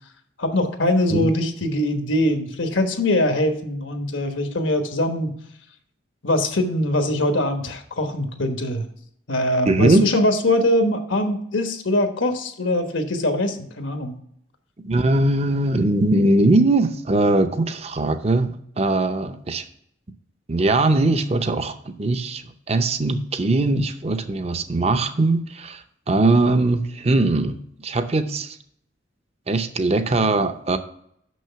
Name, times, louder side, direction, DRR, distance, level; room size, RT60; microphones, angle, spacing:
voice 1, 0.4-5.3 6.2-8.9 9.3-14.1, left 1 dB, 80° left, 6 dB, 1.2 m, -22 dB
voice 2, 9.7-10.0 14.8-18.5 18.8-19.6 20.5-27.6 27.8-28.6 29.5-30.8, right 2 dB, 30° right, 9 dB, 0.6 m, -20 dB
6.4 x 6.2 x 5.7 m, 0.70 s
head